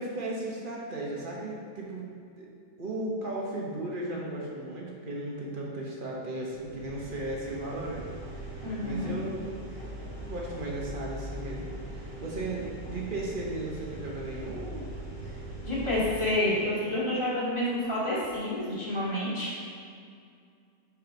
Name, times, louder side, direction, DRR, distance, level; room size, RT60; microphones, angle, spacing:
voice 1, 0.0-2.1 2.4-2.5 2.8-9.6 10.0-14.9, right 2 dB, 35° right, -3 dB, 1.1 m, -36 dB
sound 1, 6.5-16.3, right 1 dB, 35° left, 1.8 m, -41 dB
voice 2, 8.6-9.1 15.6-19.5, left 1 dB, 20° left, -8 dB, 1.8 m, -29 dB
5.5 x 4.9 x 5.1 m, 2.3 s
omnidirectional pair, 1.7 m